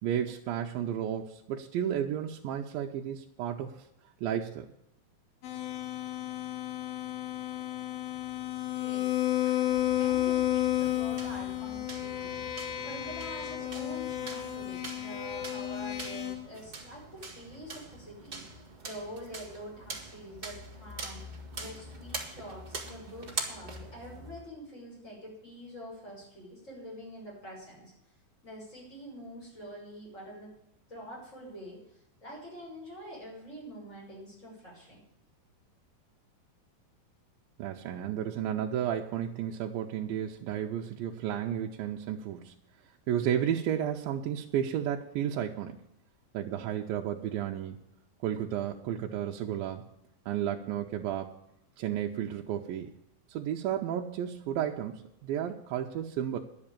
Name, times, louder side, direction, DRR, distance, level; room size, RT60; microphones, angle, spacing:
voice 1, 0.0-3.7 4.2-4.7 37.6-42.5 43.1-45.8 46.3-47.8 48.2-49.8 50.3-51.3 51.8-52.9 53.3-56.4, right 10 dB, 80° right, 1 dB, 2.4 m, -32 dB
sound 1, 5.4-16.4, left 13 dB, 85° left, 3.2 m, -32 dB
voice 2, 8.7-9.1 9.4-27.9 28.4-30.5 30.9-31.8 32.2-35.0, equal, 20° left, -4 dB, 6.5 m, -46 dB
sound 2, 9.7-24.5, right 3 dB, 25° right, 1.1 m, -43 dB
11.0 x 7.7 x 8.8 m, 0.83 s
omnidirectional pair, 4.2 m